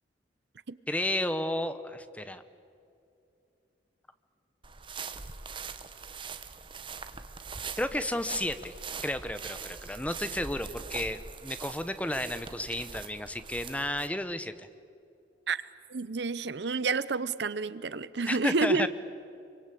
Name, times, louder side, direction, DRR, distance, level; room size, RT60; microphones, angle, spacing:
voice 1, 0.9-2.4 7.8-8.7 9.0-14.7 18.3-18.9, left 1 dB, 5° left, 11 dB, 0.9 m, -32 dB
sound 1, 4.6-14.1, right 5 dB, 25° right, 1.0 m, -42 dB
voice 2, 15.9-18.9, right 4 dB, 70° right, 17 dB, 0.8 m, -29 dB
25.5 x 24.0 x 8.5 m, 2.6 s
head